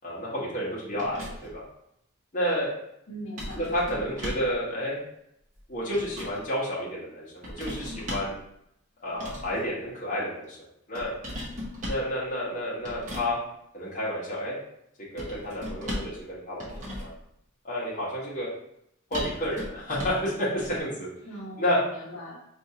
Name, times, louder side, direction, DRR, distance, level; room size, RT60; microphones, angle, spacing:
voice 1, 0.0-1.6 2.3-2.8 3.5-5.0 5.7-8.4 9.0-10.6 10.9-11.1 11.8-13.4 13.7-14.6 15.1-17.1 17.6-18.5 19.1-21.1 21.6-21.8, equal, 35° left, -7 dB, 1.0 m, -30 dB
sound 1, 1.0-1.6 3.4-4.6 5.6-6.4 7.4-8.4 9.1-9.6 11.0-12.1 12.8-13.3 15.2-16.2 16.6-17.2 19.1-20.3 20.6-20.8, left 1 dB, 35° right, 0.9 m, -37 dB
voice 2, 3.1-3.6 21.2-22.3, equal, 60° left, -5 dB, 1.0 m, -40 dB
4.7 x 2.6 x 2.7 m, 0.78 s
head